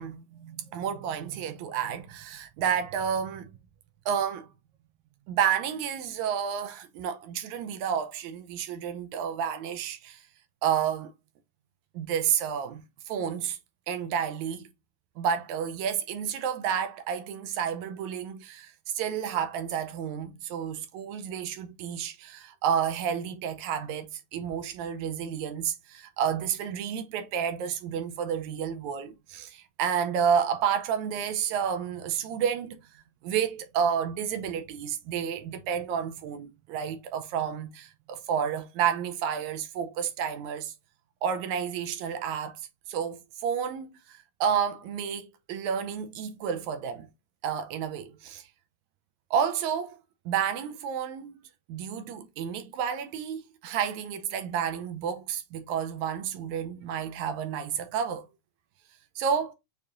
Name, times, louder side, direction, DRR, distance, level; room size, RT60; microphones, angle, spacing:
voice 1, 0.0-3.5 4.1-4.5 5.3-10.2 10.6-11.1 11.9-13.6 13.9-14.7 15.2-32.8 33.2-40.7 41.2-42.6 42.9-47.1 47.4-48.5 49.3-50.0 50.3-51.4 51.7-58.3 59.2-59.5, right 8 dB, 75° right, 1.8 m, -30 dB
6.6 x 2.7 x 2.5 m
omnidirectional pair, 3.8 m